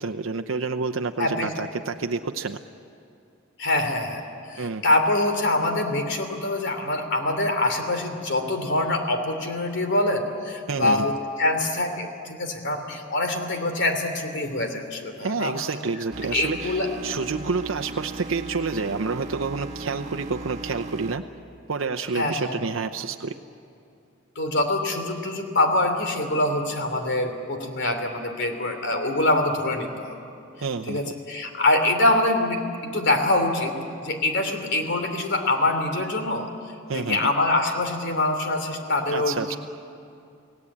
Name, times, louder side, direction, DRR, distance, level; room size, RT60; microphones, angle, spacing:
voice 1, 0.0-2.6 4.6-4.8 10.7-11.1 15.2-21.2 21.7-23.4 30.6-31.1 36.9-37.3 39.1-39.5, right 4 dB, 80° right, 5 dB, 0.7 m, -29 dB
voice 2, 1.2-1.5 3.6-4.2 4.5-11.1 11.4-15.5 16.3-16.9 22.1-22.6 24.3-30.2 30.9-33.7 34.0-36.5 36.9-39.6, left 2 dB, 60° left, 6 dB, 3.0 m, -24 dB
sound 1, 16.1-21.2, right 3 dB, 35° right, 1.5 m, -37 dB
29.5 x 18.0 x 8.6 m, 2.5 s
head